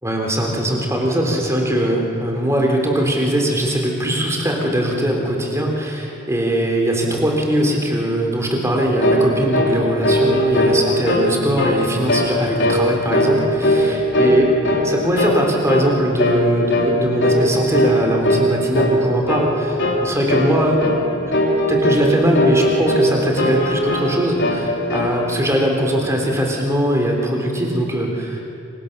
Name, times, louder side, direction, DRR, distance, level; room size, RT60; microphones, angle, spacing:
voice 1, 0.0-20.8 21.7-28.4, equal, 15° right, 0 dB, 3.5 m, -20 dB
sound 1, 9.0-9.3 9.5-9.8 10.0-11.3 11.6-11.8 12.1-12.3 12.6-12.8 13.1-13.9 14.1-14.9 15.2-15.4 15.7-15.9 16.2-16.4 16.7-16.9 17.2-17.5 17.7-18.0 18.2-18.5 18.8-19.0 19.3-19.5 19.8-20.0 20.3-20.5 20.8-21.0 21.3-22.1 22.4-23.1 23.4-24.1 24.4-25.1, left 1 dB, 55° left, 3.8 m, -18 dB
27.5 x 25.0 x 6.7 m, 2.8 s
head